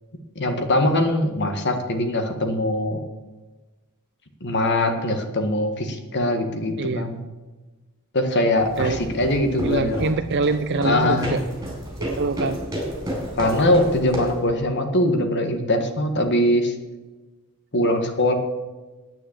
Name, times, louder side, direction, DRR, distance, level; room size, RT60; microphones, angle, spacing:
voice 1, 0.4-3.0 4.4-7.2 8.1-10.1 10.8-11.4 13.4-16.8 17.7-18.3, left 1 dB, 55° left, 6 dB, 1.6 m, -22 dB
sound 1, 8.6-14.5, equal, 15° right, 4.5 m, -31 dB
voice 2, 9.6-11.4 12.0-12.6, right 3 dB, 55° right, 9 dB, 0.5 m, -24 dB
9.2 x 9.2 x 8.6 m, 1.2 s
head